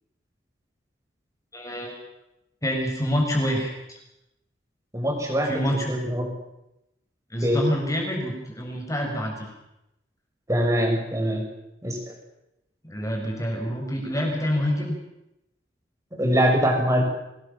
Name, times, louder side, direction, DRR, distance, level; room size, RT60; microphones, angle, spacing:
voice 1, 1.5-1.9 2.6-4.0 5.4-6.0 7.3-9.5 12.8-14.9, equal, 20° left, 0 dB, 7.6 m, -27 dB
voice 2, 4.9-5.5 5.9-6.3 7.4-7.6 10.5-11.4 11.8-12.0 16.1-17.0, equal, 20° right, 1 dB, 7.2 m, -22 dB
26.0 x 21.0 x 7.3 m, 0.88 s
head